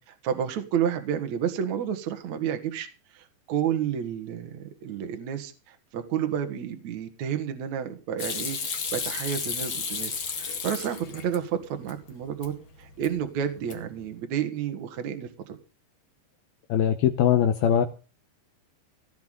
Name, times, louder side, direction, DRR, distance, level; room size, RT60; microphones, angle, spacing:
voice 1, 0.0-2.9 3.1-12.5 12.8-15.6, right 9 dB, 55° right, 6 dB, 2.2 m, -30 dB
Hands / Sink (filling or washing), 8.2-11.4 11.8-12.5 12.8-13.3 13.6-14.0, left 5 dB, 45° left, 1.6 m, -33 dB
voice 2, 16.7-17.9, left 9 dB, 80° left, 10 dB, 2.2 m, -21 dB
18.0 x 5.9 x 9.0 m, 0.35 s
omnidirectional pair, 5.3 m